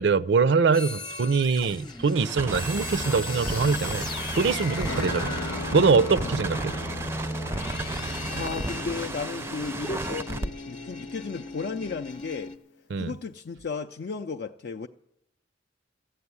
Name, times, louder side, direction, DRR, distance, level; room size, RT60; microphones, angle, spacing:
voice 1, 0.0-5.3 5.7-6.7 12.9-13.1, right 4 dB, 70° right, 0.5 m, -23 dB
sound 1, 0.7-12.6, left 3 dB, 25° left, 0.8 m, -38 dB
sound 2, 2.1-10.5, right 2 dB, 15° right, 0.4 m, -33 dB
sound 3, 4.9-12.1, left 2 dB, 90° left, 0.7 m, -41 dB
voice 2, 6.2-6.6 7.7-12.5 13.0-14.9, left 4 dB, 55° left, 0.4 m, -35 dB
14.5 x 7.8 x 9.6 m
head